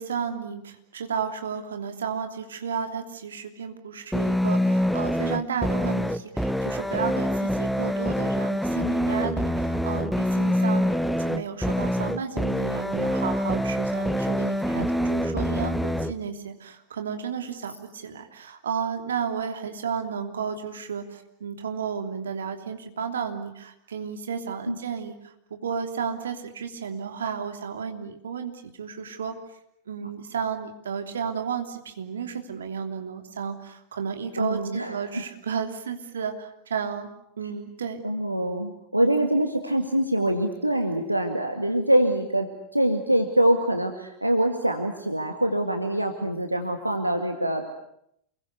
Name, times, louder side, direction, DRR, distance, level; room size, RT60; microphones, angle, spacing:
voice 1, 0.0-25.2 25.5-28.5 28.8-29.3 29.9-37.1 37.4-38.0, right 6 dB, 65° right, 6 dB, 3.1 m, -32 dB
sound 1, 4.1-16.1, equal, ahead, 1.1 m, -25 dB
voice 2, 34.4-35.2 38.0-47.7, right 1 dB, 85° right, 5 dB, 2.1 m, -24 dB
28.5 x 22.5 x 8.2 m, 0.75 s
figure-of-eight pair, 90°, 0 cm